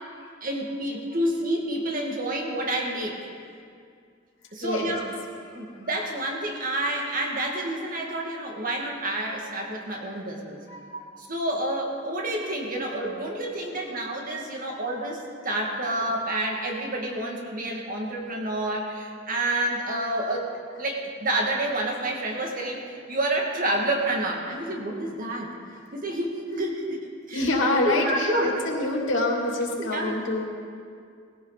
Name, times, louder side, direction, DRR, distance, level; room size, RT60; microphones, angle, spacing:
voice 1, 0.4-3.2 4.5-5.0 5.5-10.6 10.9-25.5 25.9-27.0 27.3-27.5 27.8-28.6 29.8-30.2, right 1 dB, 45° right, 0 dB, 2.2 m, -29 dB
voice 2, 4.6-5.0 10.7-10.8 27.3-30.5, left 2 dB, 75° left, -1 dB, 2.8 m, -26 dB
20.5 x 15.5 x 4.1 m, 2.2 s
head